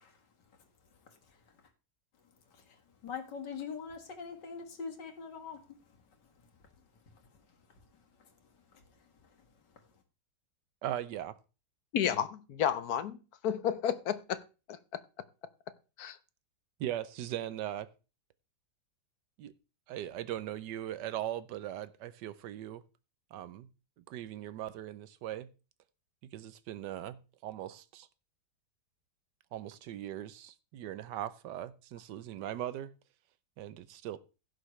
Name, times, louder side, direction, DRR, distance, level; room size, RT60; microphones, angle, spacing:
voice 1, 3.0-5.6, left 6 dB, 80° left, 2.3 m, -41 dB
voice 2, 10.8-11.4 16.8-17.9 19.4-19.5 19.9-22.8 23.3-23.7 24.1-25.5 26.3-28.1 29.5-32.9 33.6-34.2, right 12 dB, 85° right, 1.3 m, -39 dB
voice 3, 11.9-13.2 13.4-14.4 16.0-16.2, left 9 dB, 65° left, 1.3 m, -31 dB
16.0 x 6.5 x 3.2 m
omnidirectional pair, 1.8 m